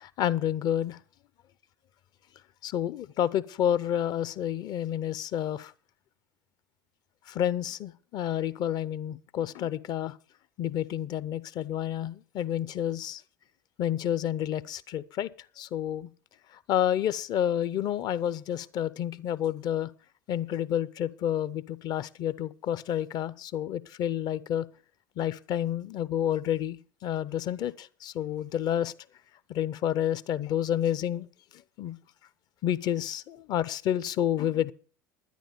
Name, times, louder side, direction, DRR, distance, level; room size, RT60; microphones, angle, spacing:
voice 1, 0.0-1.0 2.6-5.7 7.3-10.1 10.6-13.2 13.8-15.3 15.6-16.1 16.7-19.9 20.3-24.7 25.2-28.9 29.5-31.3 31.8-32.0 32.6-34.7, left 10 dB, 40° left, 0.6 m, -29 dB
11.5 x 10.5 x 5.2 m
figure-of-eight pair, 75°, 10 cm